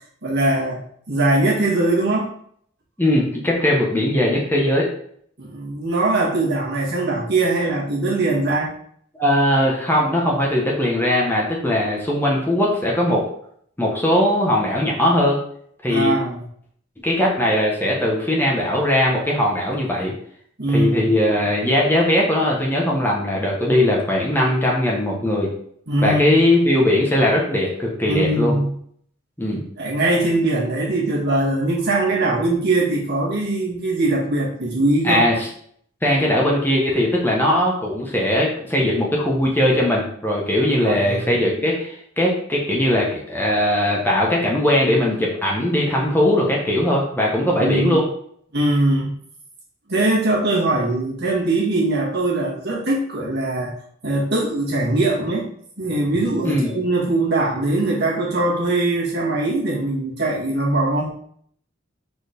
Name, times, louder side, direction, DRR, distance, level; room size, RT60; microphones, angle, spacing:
voice 1, 0.2-2.3 5.4-8.7 15.9-16.4 20.6-21.1 25.9-26.4 28.1-28.7 29.8-35.3 40.8-41.3 47.6-48.0 48.5-49.1 49.9-53.8 54.0-55.5 55.8-61.1, right 2 dB, 55° right, -4 dB, 2.0 m, -21 dB
voice 2, 3.0-4.9 9.2-13.3 13.8-15.4 15.8-16.1 17.0-20.1 20.7-25.5 26.0-28.5 29.4-29.6 35.0-35.5 36.0-48.1 56.4-56.7, left 1 dB, 10° left, -3 dB, 1.2 m, -19 dB
4.5 x 4.4 x 5.2 m, 0.64 s
head